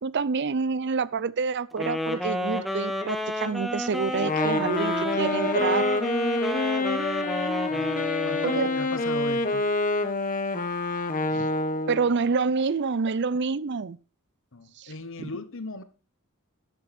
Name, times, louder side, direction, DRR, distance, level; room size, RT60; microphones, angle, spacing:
voice 1, 0.0-5.9 8.4-8.7 11.3-11.5 11.9-14.0 14.8-14.9 15.2-15.3, right 5 dB, 55° right, 0.5 m, -27 dB
Wind instrument woodwind instrument, 1.7-8.9, equal, ahead, 1.3 m, -30 dB
Wind instrument woodwind instrument 2, 4.1-12.1, left 2 dB, 40° left, 1.3 m, -27 dB
voice 2, 7.7-9.6 14.5-15.8, left 2 dB, 60° left, 1.2 m, -38 dB
13.5 x 8.8 x 4.3 m
head